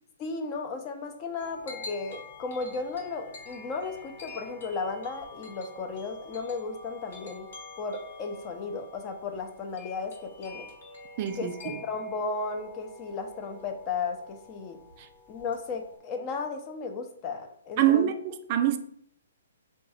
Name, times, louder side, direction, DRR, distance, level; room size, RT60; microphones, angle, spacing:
voice 1, 0.2-7.5 7.8-10.7 11.4-14.8 15.3-18.0, left 4 dB, 30° left, 0.6 m, -35 dB
sound 1, 1.4-16.0, left 3 dB, 70° left, 1.2 m, -47 dB
voice 2, 11.2-11.8 15.0-15.1 17.8-18.8, right 11 dB, 40° right, 0.3 m, -25 dB
3.6 x 2.3 x 4.2 m
hypercardioid pair, 140°, 0 cm